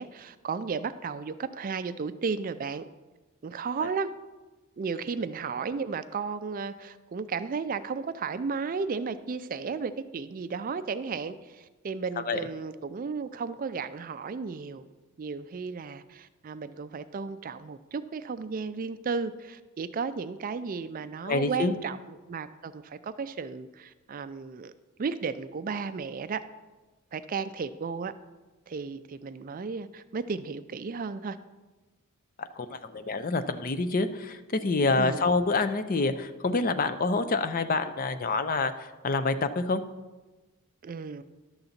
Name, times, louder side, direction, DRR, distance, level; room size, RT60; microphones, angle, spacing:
voice 1, 0.0-2.9 3.4-4.1 4.8-14.8 15.2-24.7 25.0-26.4 27.1-28.1 28.7-31.4 35.0-35.2 40.8-41.2, right 5 dB, 40° right, 12 dB, 0.4 m, -34 dB
voice 2, 21.3-21.7 32.4-39.8, left 3 dB, 40° left, 11 dB, 0.5 m, -27 dB
11.5 x 3.9 x 7.2 m, 1.2 s
head